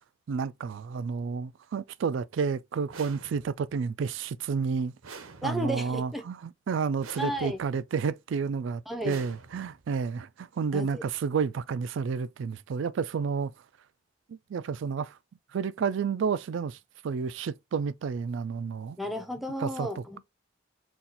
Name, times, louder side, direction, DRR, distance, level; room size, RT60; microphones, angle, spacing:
voice 1, 0.3-4.9 5.4-13.5 14.3-15.1 15.5-16.8 17.0-19.0 19.6-20.2, right 5 dB, 65° right, 0.3 m, -31 dB
sound 1, 2.9-3.8 5.0-5.9 7.0-7.8 9.0-9.9, right 5 dB, 85° right, 0.7 m, -47 dB
voice 2, 5.4-6.3 7.2-7.6 8.9-9.3 10.7-11.0 19.0-20.2, equal, ahead, 0.6 m, -33 dB
4.2 x 2.3 x 3.9 m
head